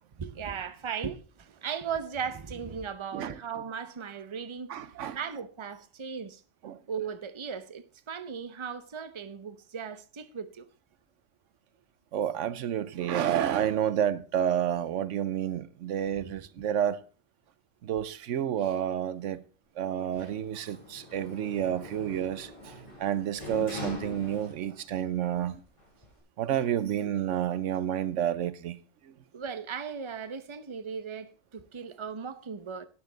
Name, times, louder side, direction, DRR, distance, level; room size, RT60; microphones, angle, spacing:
voice 1, 0.2-4.7 5.1-6.4 6.9-10.6 16.1-16.5 29.3-32.9, right 6 dB, 30° right, 0.7 m, -37 dB
voice 2, 4.7-5.2 6.6-6.8 12.1-17.0 17.8-19.4 19.8-22.5 23.0-25.6 26.4-28.8, right 10 dB, 85° right, 1.0 m, -29 dB
Sliding door, 20.1-24.9 25.3-26.2, left 2 dB, 25° left, 5.9 m, -43 dB
12.5 x 9.8 x 3.9 m
omnidirectional pair, 1.2 m